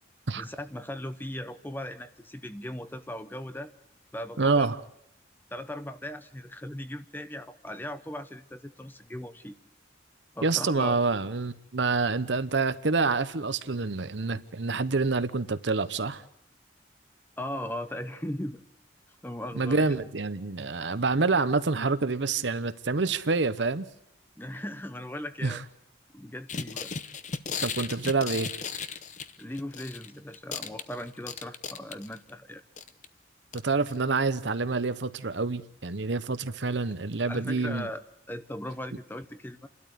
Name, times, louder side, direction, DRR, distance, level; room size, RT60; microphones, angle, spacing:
voice 1, 0.3-3.7 4.1-4.7 5.5-9.6 10.4-11.0 17.4-18.6 19.1-20.0 24.4-25.6 26.1-26.9 29.4-32.6 37.3-38.0 38.3-39.7, left 1 dB, 10° left, 0.8 m, -38 dB
voice 2, 4.4-4.8 10.4-16.2 19.5-23.9 25.4-25.6 27.6-28.5 33.5-37.9, right 3 dB, 70° right, 0.9 m, -27 dB
sound 1, 26.5-30.1 30.3-32.3 32.8-33.0 33.5-33.6 33.9-34.0, left 6 dB, 40° left, 0.8 m, -36 dB
29.5 x 12.5 x 8.3 m
head